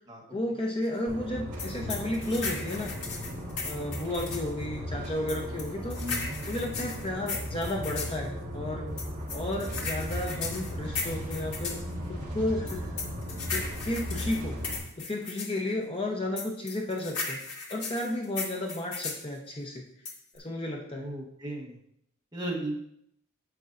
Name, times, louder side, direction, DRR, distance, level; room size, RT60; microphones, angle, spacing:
voice 1, 0.3-2.9 3.6-6.0 6.5-8.9 9.3-11.8 12.1-12.9 13.5-14.6 15.0-17.4 17.7-19.9 20.3-21.1, left 1 dB, 25° left, 0 dB, 0.8 m, -33 dB
sound 1, 1.1-14.8, equal, 35° right, 1.7 m, -37 dB
sound 2, 1.6-4.5 5.3-8.2 9.0-11.8 12.7-15.6 16.4-19.2 20.1-20.4, left 4 dB, 75° left, 1.5 m, -36 dB
voice 2, 6.0-6.5 20.9-21.7 22.3-22.8, right 1 dB, 15° right, -1 dB, 1.1 m, -35 dB
9.3 x 6.9 x 2.5 m, 0.73 s
head